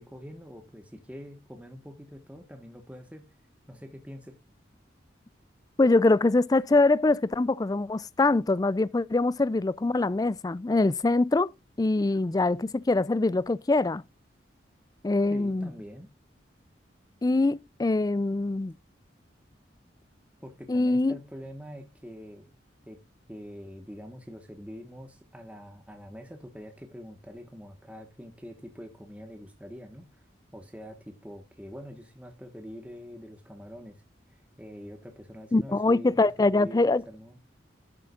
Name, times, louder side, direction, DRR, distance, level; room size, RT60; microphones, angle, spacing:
voice 1, 0.0-3.3 3.7-4.3 15.3-16.1 20.4-22.5 22.9-23.0 23.3-30.1 30.5-34.0 34.3-37.4, equal, 5° right, 1.4 m, -45 dB
voice 2, 5.8-11.5 11.8-14.0 15.0-15.7 17.2-18.7 20.7-21.2 35.5-37.0, left 2 dB, 20° left, 0.3 m, -23 dB
11.5 x 7.5 x 2.5 m
head